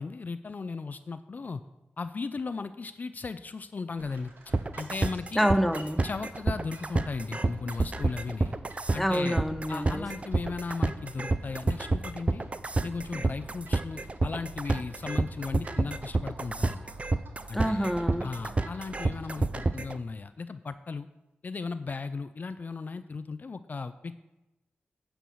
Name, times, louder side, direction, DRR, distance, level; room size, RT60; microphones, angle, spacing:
voice 1, 0.0-1.6 2.0-5.4 6.0-8.5 8.9-9.4 9.7-12.4 12.8-16.8 17.5-17.9 18.2-21.1 21.4-24.1, left 4 dB, 50° left, 12 dB, 0.4 m, -36 dB
sound 1, 4.0-19.9, right 3 dB, 65° right, 1.7 m, -50 dB
sound 2, 4.5-20.0, right 3 dB, 35° right, 0.5 m, -28 dB
voice 2, 5.4-6.0 9.0-10.0 17.5-18.3, equal, 5° left, 8 dB, 0.8 m, -27 dB
10.0 x 4.6 x 7.0 m, 0.98 s
cardioid pair, 70°, 4 cm